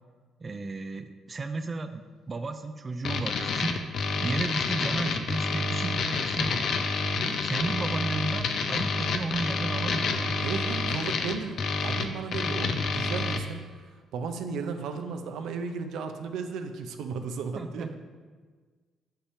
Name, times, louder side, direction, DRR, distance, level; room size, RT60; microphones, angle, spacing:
voice 1, 0.4-3.9 4.2-6.8 7.2-10.2 17.6-17.9, right 3 dB, 30° right, 9 dB, 0.4 m, -33 dB
sound 1, 3.0-13.4, left 4 dB, 65° left, 0.6 m, -28 dB
voice 2, 10.4-13.6 14.1-17.9, right 5 dB, 80° right, 7 dB, 0.6 m, -34 dB
5.7 x 4.9 x 5.6 m, 1.5 s
cardioid pair, 90°, 0 cm